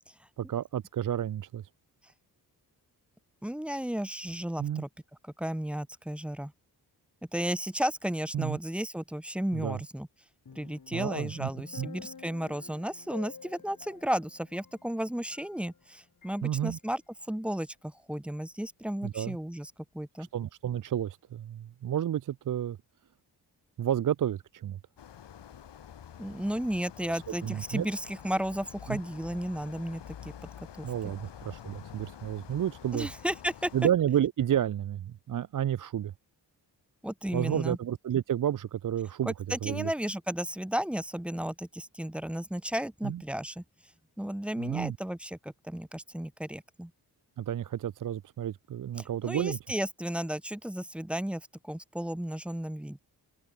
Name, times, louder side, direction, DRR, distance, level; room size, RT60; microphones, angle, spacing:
voice 1, 0.4-1.6 4.6-4.8 8.3-8.6 9.5-9.8 10.9-11.5 11.8-11.9 16.4-16.8 19.0-19.4 20.2-22.8 23.8-24.8 27.1-27.9 28.9-29.0 30.8-33.1 33.7-36.1 37.3-39.9 43.0-43.2 44.6-45.0 47.4-49.6, right 10 dB, 50° right, 0.5 m, -31 dB
voice 2, 3.4-4.9 5.4-6.5 7.3-10.1 10.6-17.0 17.3-20.3 26.2-30.3 30.8-30.9 32.9-33.7 37.0-37.8 39.2-43.6 44.2-46.9 49.0-53.0, equal, 5° right, 0.5 m, -34 dB
sound 1, 10.5-15.9 16.2-16.4, left 6 dB, 50° left, 2.3 m, -50 dB
sound 2, 25.0-33.9, left 9 dB, 80° left, 2.8 m, -48 dB
cardioid pair, 60°, 42 cm